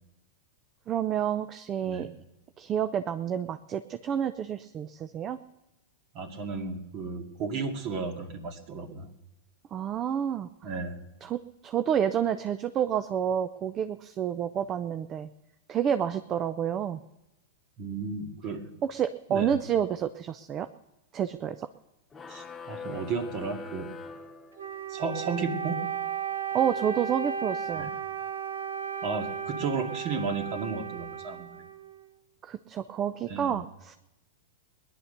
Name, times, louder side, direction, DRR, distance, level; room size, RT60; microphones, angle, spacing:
voice 1, 0.9-2.1 2.6-5.4 9.7-10.5 11.2-15.3 15.7-17.0 18.8-20.7 21.1-21.7 26.5-27.9 32.4-34.0, right 9 dB, 30° right, 11 dB, 0.6 m, -29 dB
voice 2, 6.1-9.1 10.6-11.0 17.8-18.7 19.3-19.6 22.3-23.9 24.9-25.8 27.7-27.9 29.0-31.5 33.3-33.5, right 4 dB, 50° right, 4 dB, 2.3 m, -33 dB
sound 1, 22.1-25.0, left 4 dB, 20° left, 1.0 m, -43 dB
Wind instrument woodwind instrument, 24.6-32.1, right 7 dB, 85° right, 0.8 m, -35 dB
19.0 x 11.0 x 6.7 m, 0.96 s
hypercardioid pair, 115°, 0 cm